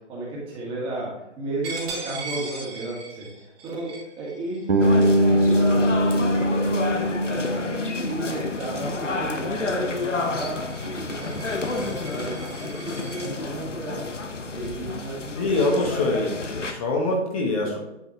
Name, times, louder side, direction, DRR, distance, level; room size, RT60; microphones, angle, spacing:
voice 1, 0.1-3.9 4.2-7.7 8.0-14.0 14.5-15.5 15.8-15.9, right 2 dB, 15° right, -4 dB, 1.8 m, -33 dB
Coin (dropping), 1.6-7.0 7.5-7.8 8.2-13.3, right 3 dB, 35° right, 2.6 m, -40 dB
Bass guitar, 4.7-8.6, equal, 50° right, 1.2 m, -22 dB
sound 1, 4.8-16.7, left 3 dB, 85° left, 1.0 m, -30 dB
voice 2, 15.4-17.8, left 2 dB, 30° left, -1 dB, 1.2 m, -24 dB
9.3 x 5.4 x 3.0 m, 0.92 s
figure-of-eight pair, 135°, 36 cm